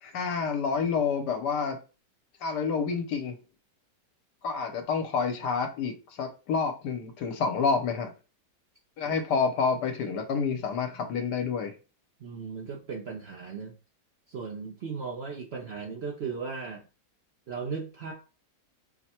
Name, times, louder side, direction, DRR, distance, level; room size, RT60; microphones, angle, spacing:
voice 1, 0.0-1.8 2.4-3.3 4.4-8.1 9.0-11.7, left 5 dB, 80° left, 1.4 m, -28 dB
voice 2, 12.2-13.7 14.3-16.8 17.5-18.1, right 5 dB, 65° right, 0.6 m, -36 dB
4.6 x 2.2 x 4.3 m
omnidirectional pair, 1.8 m